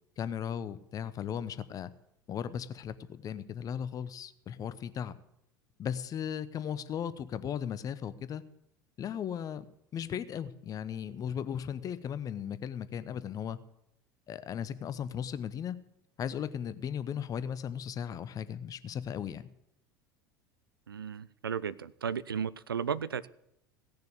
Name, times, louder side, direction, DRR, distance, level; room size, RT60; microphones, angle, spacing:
voice 1, 0.2-1.9 2.3-5.2 5.8-8.4 9.0-9.6 9.9-13.6 14.3-15.8 16.2-19.4, left 8 dB, 30° left, 15 dB, 0.8 m, -36 dB
voice 2, 20.9-23.3, right 7 dB, 80° right, 18 dB, 0.5 m, -34 dB
17.0 x 6.8 x 8.0 m, 0.78 s
figure-of-eight pair, 75°, 12 cm